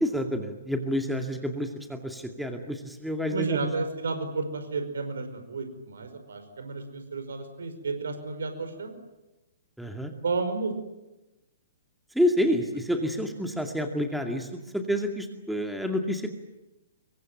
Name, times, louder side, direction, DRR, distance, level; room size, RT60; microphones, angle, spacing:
voice 1, 0.0-3.7 9.8-10.1 12.1-16.3, equal, ahead, 4 dB, 2.3 m, -28 dB
voice 2, 3.3-8.9 10.2-10.7, right 4 dB, 65° right, 8 dB, 5.2 m, -32 dB
25.5 x 23.5 x 9.2 m, 1.0 s
figure-of-eight pair, 120°, 0 cm